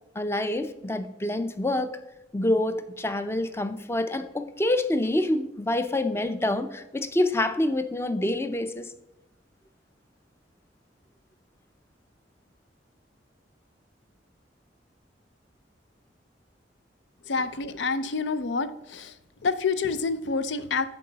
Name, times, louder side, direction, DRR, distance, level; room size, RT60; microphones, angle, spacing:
voice 1, 0.2-2.0 2.3-8.9, left 1 dB, 15° left, 0.5 m, -27 dB
voice 2, 17.3-19.1 19.4-20.9, left 4 dB, 80° left, 0.6 m, -28 dB
10.5 x 4.6 x 3.9 m
head